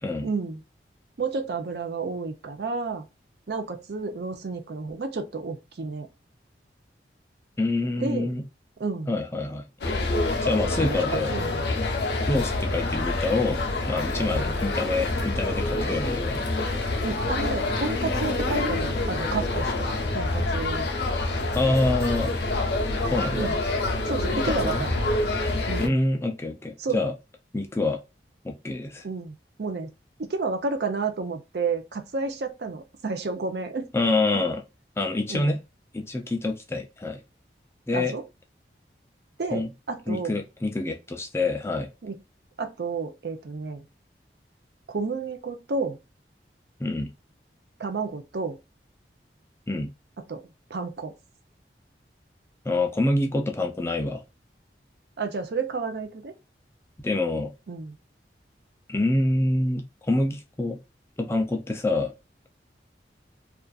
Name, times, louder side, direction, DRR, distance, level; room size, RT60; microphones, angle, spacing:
voice 1, 0.2-0.6 1.2-3.1 3.5-6.1 8.0-8.3 8.8-9.1 10.8-11.7 14.4-14.5 17.0-19.9 20.1-20.9 23.4-23.6 24.0-24.9 25.7-26.0 26.8-27.1 29.0-29.9 30.2-33.9 35.3-35.6 37.9-38.2 39.4-39.6 39.9-40.4 42.0-42.2 42.6-43.8 44.9-46.0 47.8-48.6 50.3-50.4 50.7-51.1 55.2-56.3 57.7-58.0, right 4 dB, 65° right, 0.5 m, -31 dB
voice 2, 7.6-8.4 9.1-9.6 10.4-11.3 12.3-16.5 21.5-22.3 23.1-23.5 24.3-24.9 25.8-27.1 27.5-28.0 28.4-29.0 33.9-34.6 35.0-35.6 35.9-37.2 37.9-38.1 39.5-39.7 40.1-41.9 46.8-47.1 49.7-49.9 52.7-54.2 57.0-57.5 58.9-60.8 61.2-62.1, left 2 dB, 15° left, 0.3 m, -26 dB
sound 1, 9.8-25.9, left 2 dB, 70° left, 0.6 m, -27 dB
2.4 x 2.4 x 2.3 m
head